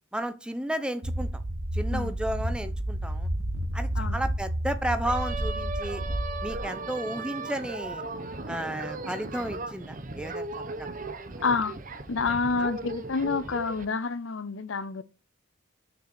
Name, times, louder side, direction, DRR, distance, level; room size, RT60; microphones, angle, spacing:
voice 1, 0.1-1.4 1.7-3.3 3.7-6.0 6.4-8.0 8.5-10.5 10.8-10.9 11.3-11.4 12.6-12.7, right 1 dB, 5° right, 0.8 m, -33 dB
sound 1, 1.0-6.6, right 1 dB, 75° right, 1.3 m, -30 dB
sound 2, 5.0-13.8, right 3 dB, 40° right, 1.0 m, -37 dB
voice 2, 11.4-11.7 12.1-15.0, left 4 dB, 70° left, 0.6 m, -28 dB
6.6 x 6.3 x 6.1 m
head